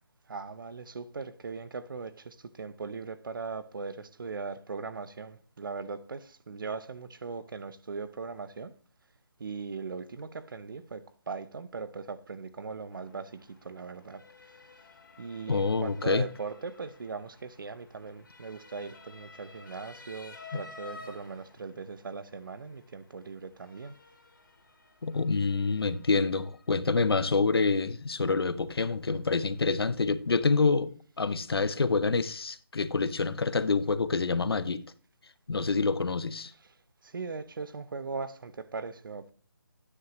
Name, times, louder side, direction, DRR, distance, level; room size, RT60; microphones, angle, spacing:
voice 1, 0.3-8.7 9.4-14.2 15.2-24.0 36.5-36.7 37.0-39.3, right 4 dB, 60° right, 0.7 m, -39 dB
Motor vehicle (road) / Siren, 12.9-30.3, left 3 dB, 55° left, 2.1 m, -54 dB
voice 2, 15.5-16.3 20.5-20.6 25.0-34.8 35.5-36.5, left 4 dB, 80° left, 0.7 m, -27 dB
9.8 x 6.6 x 3.0 m
figure-of-eight pair, 165°, 13 cm